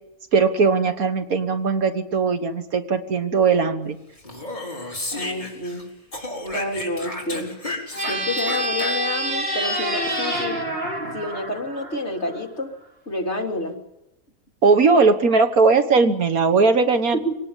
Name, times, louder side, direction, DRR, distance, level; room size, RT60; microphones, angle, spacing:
voice 1, 0.3-4.0 14.6-17.2, right 4 dB, 70° right, 8 dB, 1.9 m, -19 dB
Speech, 4.2-5.8 6.1-9.3, left 2 dB, 30° left, 4.4 m, -32 dB
voice 2, 5.1-5.9 6.5-7.6 8.1-10.8 11.1-12.7 13.1-13.8 17.1-17.4, left 1 dB, 45° left, 1 dB, 3.6 m, -29 dB
sound 1, 7.9-12.4, right 1 dB, 40° right, 3.7 m, -27 dB
25.0 x 18.5 x 8.9 m, 0.89 s
omnidirectional pair, 1.6 m